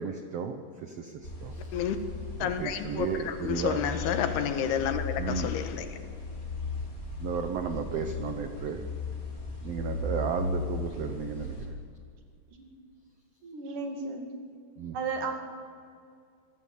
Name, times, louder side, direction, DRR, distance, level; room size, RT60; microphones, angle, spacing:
voice 1, 0.0-1.8 2.4-3.8 5.2-5.5 7.2-8.8 9.6-11.8 14.8-15.0, right 6 dB, 80° right, 7 dB, 1.4 m, -34 dB
sound 1, 1.2-11.7, left 3 dB, 20° left, 4.2 m, -36 dB
voice 2, 2.4-5.9, left 8 dB, 85° left, 8 dB, 3.5 m, -30 dB
voice 3, 13.4-14.3 14.9-15.3, right 4 dB, 60° right, 4 dB, 3.7 m, -34 dB
27.0 x 17.0 x 8.5 m, 2.2 s
omnidirectional pair, 4.5 m